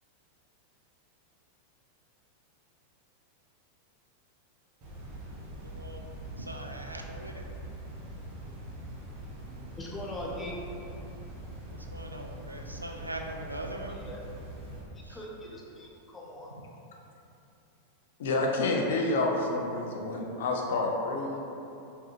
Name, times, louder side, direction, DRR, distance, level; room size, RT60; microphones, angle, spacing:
sound 1, 4.8-14.8, right 1 dB, 40° right, 0.8 m, -43 dB
voice 1, 6.5-7.3 11.9-14.0, right 1 dB, 85° right, 3 dB, 0.3 m, -40 dB
voice 2, 9.8-10.6 13.9-14.2 15.1-16.5, left 1 dB, 15° left, -3 dB, 0.6 m, -41 dB
voice 3, 18.2-21.4, left 2 dB, 60° left, 1 dB, 0.5 m, -28 dB
4.7 x 2.7 x 2.5 m, 2.8 s
figure-of-eight pair, 90°, 0 cm